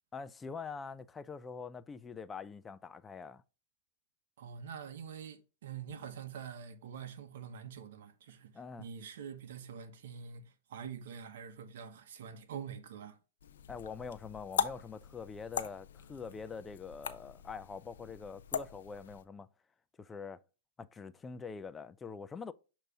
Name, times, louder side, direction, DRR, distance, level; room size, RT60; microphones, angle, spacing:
voice 1, 0.1-3.4 8.5-8.9 13.7-19.5 20.0-20.4 20.8-22.5, left 5 dB, 15° left, 0.4 m, -44 dB
voice 2, 4.4-13.2, right 7 dB, 65° right, 0.9 m, -46 dB
sound 1, 13.4-19.2, left 8 dB, 75° left, 0.7 m, -41 dB
6.6 x 3.0 x 4.7 m
hypercardioid pair, 120°, 0 cm